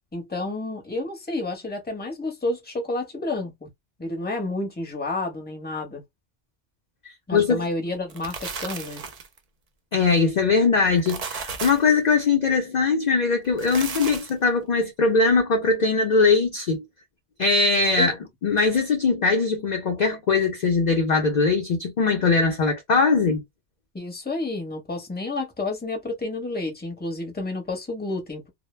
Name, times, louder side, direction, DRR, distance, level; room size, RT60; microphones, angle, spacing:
voice 1, 0.1-3.7 4.0-6.0 7.3-9.0 18.0-18.1 23.9-28.5, left 2 dB, 10° left, 0.7 m, -30 dB
voice 2, 7.3-7.7 9.9-16.8 17.4-18.1 18.4-23.4, left 4 dB, 50° left, 0.5 m, -21 dB
sound 1, 7.9-9.4 10.8-11.9 13.4-14.5, right 5 dB, 50° right, 0.5 m, -34 dB
2.1 x 2.0 x 3.1 m
omnidirectional pair, 1.2 m